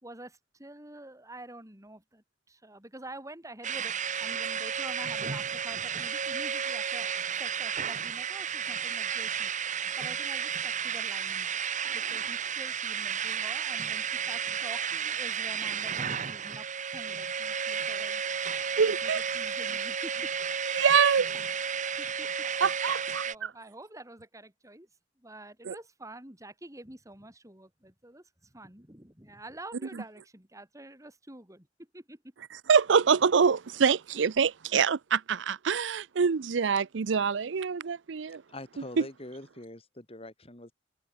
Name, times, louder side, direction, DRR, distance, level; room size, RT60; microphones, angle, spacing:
voice 1, 0.0-3.9 4.2-7.1 7.4-18.2 18.8-20.3 20.7-21.0 21.9-22.5 22.8-24.9 25.2-32.2, right 1 dB, 15° right, 4.7 m, -48 dB
sound 1, 3.6-23.3, right 7 dB, 40° right, 1.5 m, -32 dB
voice 2, 18.8-19.2 20.7-21.3 22.6-23.5 25.7-25.8 32.7-38.4 39.0-39.1, right 6 dB, 75° right, 0.5 m, -25 dB
voice 3, 38.5-40.7, left 1 dB, 30° left, 3.8 m, -44 dB
head